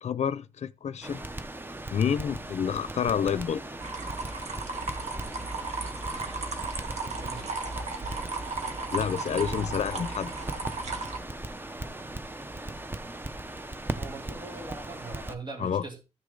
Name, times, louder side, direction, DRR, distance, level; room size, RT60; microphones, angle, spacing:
voice 1, 0.0-1.2 1.9-3.6 8.9-10.3 15.6-15.8, left 7 dB, 75° left, 0.5 m, -28 dB
Crackle, 1.0-15.4, right 2 dB, 20° right, 0.8 m, -38 dB
sound 1, 3.8-11.2, right 3 dB, 80° right, 1.9 m, -35 dB
voice 2, 7.2-7.6 13.9-16.0, right 3 dB, 40° right, 2.5 m, -41 dB
14.0 x 6.4 x 3.9 m
wide cardioid pair, 135°, 12 cm